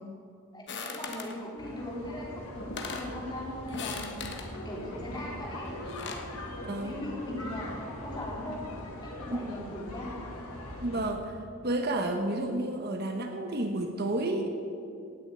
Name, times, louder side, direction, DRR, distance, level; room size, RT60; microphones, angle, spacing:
voice 1, 0.5-4.2 4.6-5.7 6.3-7.7 8.0-8.6 9.0-10.1, left 1 dB, 20° left, -4 dB, 3.6 m, -39 dB
sound 1, 0.7-1.4 2.3-2.4 2.6-3.1 3.7-4.5 5.7-6.3, left 4 dB, 50° left, 1.4 m, -39 dB
sound 2, 1.6-11.1, left 1 dB, 90° left, 2.4 m, -41 dB
voice 2, 6.6-6.9 9.3-9.6 10.8-11.3 11.6-14.5, right 1 dB, 45° right, 5 dB, 1.0 m, -31 dB
17.5 x 7.1 x 8.8 m, 2.6 s
head